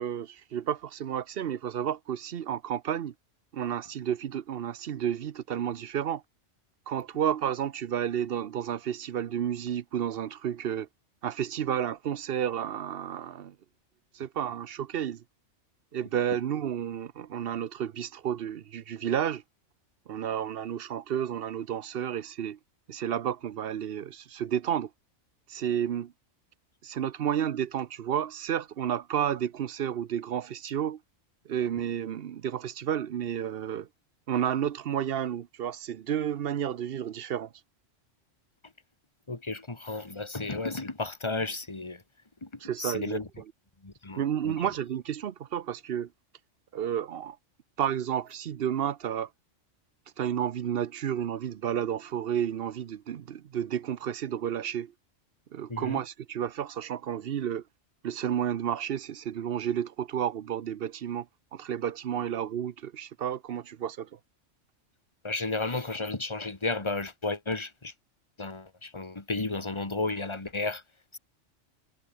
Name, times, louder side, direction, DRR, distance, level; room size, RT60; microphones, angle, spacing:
voice 1, 0.0-3.1 3.5-6.2 6.9-10.9 11.2-13.5 14.1-15.2 15.9-19.4 20.1-22.6 22.9-24.9 25.5-26.1 26.8-31.0 31.5-33.9 34.3-37.5 42.6-43.2 44.2-46.1 46.7-47.4 47.8-49.3 50.2-54.9 55.5-57.6 58.0-61.3 61.5-64.1, right 9 dB, 55° right, 0.8 m, -31 dB
voice 2, 39.3-42.0 42.4-42.5 42.8-43.3 43.8-44.7 55.7-56.0 65.2-67.9 68.4-70.8 71.1-71.2, left 3 dB, 25° left, 1.9 m, -33 dB
omnidirectional pair, 1.3 m